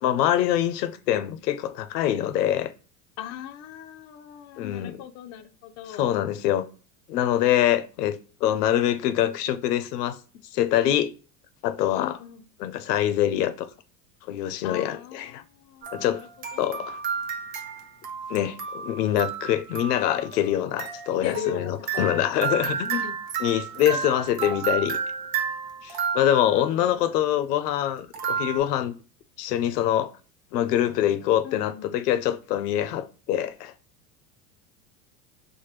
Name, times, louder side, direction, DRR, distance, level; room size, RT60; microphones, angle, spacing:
voice 1, 0.0-2.7 4.6-5.0 6.0-6.7 7.1-10.2 10.5-11.1 11.6-12.2 12.6-13.7 14.3-15.4 15.9-16.2 16.6-17.0 18.3-23.1 23.4-25.0 25.8-28.9 29.4-30.1 30.5-33.7, left 11 dB, 85° left, 0.6 m, -24 dB
voice 2, 3.2-6.2 12.0-12.4 14.6-16.8 21.2-22.3 22.7-23.1 23.9-24.1 24.4-24.9 26.4-27.1 31.4-32.0, left 9 dB, 35° left, 0.5 m, -38 dB
Music Box, 15.8-26.7 28.1-28.6, right 6 dB, 60° right, 1.0 m, -32 dB
4.3 x 2.2 x 3.2 m
hypercardioid pair, 100°, 46 cm